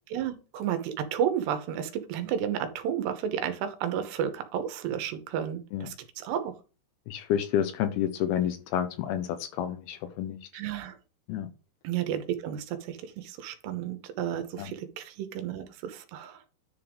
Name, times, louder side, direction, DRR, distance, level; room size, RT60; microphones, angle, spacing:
voice 1, 0.1-6.5 10.5-11.0 11.8-16.4, right 9 dB, 80° right, 9 dB, 3.1 m, -32 dB
voice 2, 7.1-10.4 11.3-11.5 14.6-14.7, left 10 dB, 75° left, 10 dB, 2.6 m, -29 dB
10.5 x 3.7 x 5.3 m, 0.34 s
omnidirectional pair, 4.9 m